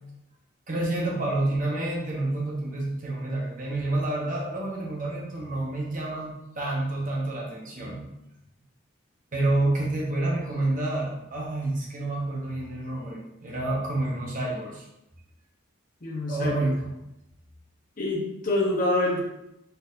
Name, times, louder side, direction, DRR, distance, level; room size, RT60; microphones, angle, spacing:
voice 1, 0.7-8.1 9.3-14.9 16.3-17.0, right 2 dB, 40° right, -3 dB, 1.1 m, -28 dB
voice 2, 16.0-16.7 18.0-19.2, left 2 dB, 40° left, -3 dB, 1.0 m, -26 dB
4.1 x 4.0 x 2.6 m, 0.87 s
head